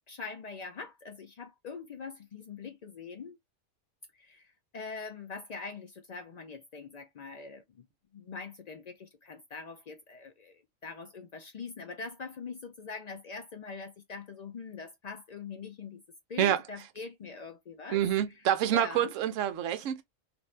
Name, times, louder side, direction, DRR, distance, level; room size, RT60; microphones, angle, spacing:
voice 1, 0.1-3.4 4.1-7.9 8.1-16.0 16.3-18.0 18.3-19.1, left 5 dB, 85° left, 0.3 m, -43 dB
voice 2, 17.9-20.0, right 11 dB, 75° right, 1.0 m, -27 dB
2.6 x 2.5 x 3.2 m
omnidirectional pair, 1.3 m